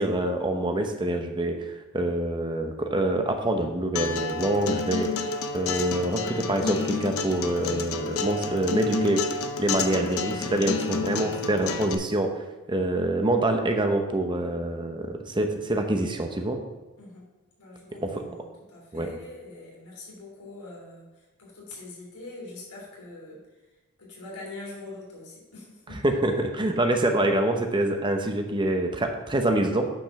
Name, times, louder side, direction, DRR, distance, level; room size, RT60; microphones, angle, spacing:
voice 1, 0.0-5.1 5.5-9.2 9.6-12.3 12.7-16.6 18.0-18.3 18.9-19.1 25.9-29.9, right 1 dB, 20° right, 4 dB, 0.9 m, -26 dB
Acoustic guitar, 4.0-11.9, left 4 dB, 70° left, 0.7 m, -30 dB
voice 2, 17.6-18.4 18.7-21.0 21.4-23.4 24.0-26.0, left 2 dB, 85° left, -4 dB, 3.1 m, -43 dB
9.1 x 5.4 x 5.9 m, 1.2 s
head